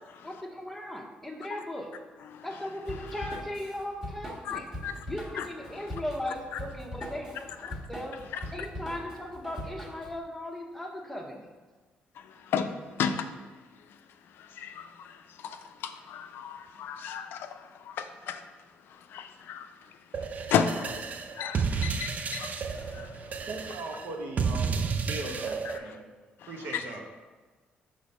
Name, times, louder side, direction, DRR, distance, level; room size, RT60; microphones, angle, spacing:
voice 1, 0.2-1.9 2.4-4.7 5.1-8.2 8.5-11.5, left 1 dB, 5° left, 1 dB, 0.9 m, -37 dB
Drum kit / Drum, 2.8-10.2, equal, 20° right, 1.5 m, -41 dB
voice 2, 4.4-5.0 5.4-5.8 6.5-6.6 7.6-7.7 8.4-8.5 12.2-13.3 14.3-18.5 18.9-19.9 20.5-21.1 21.3-23.5 25.6-26.0 26.4-26.8, left 7 dB, 80° left, 8 dB, 0.4 m, -34 dB
sound 1, 20.1-25.8, right 5 dB, 45° right, 0.4 m, -32 dB
voice 3, 23.5-26.1 26.5-27.0, right 2 dB, 70° right, 1 dB, 1.0 m, -38 dB
5.2 x 3.5 x 5.4 m, 1.3 s
cardioid pair, 90°, 4 cm